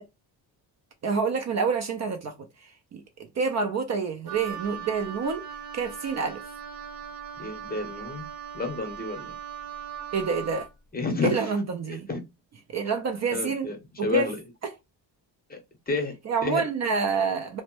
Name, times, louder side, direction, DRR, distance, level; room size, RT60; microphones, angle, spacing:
voice 1, 1.0-3.0 3.4-5.4 5.7-6.4 10.1-10.7 11.2-12.1 12.7-13.7 14.0-14.3 14.6-14.7 16.3-17.6, right 5 dB, 40° right, 0.4 m, -28 dB
Wind instrument woodwind instrument, 4.3-10.7, right 8 dB, 75° right, 0.8 m, -39 dB
voice 2, 7.4-8.2 8.5-9.3 10.9-11.5 11.9-12.2 13.3-13.8 14.0-14.4 15.5-15.6 15.9-16.1 16.4-16.6, left 3 dB, 20° left, 0.7 m, -29 dB
2.1 x 2.0 x 2.9 m
cardioid pair, 110°, 42 cm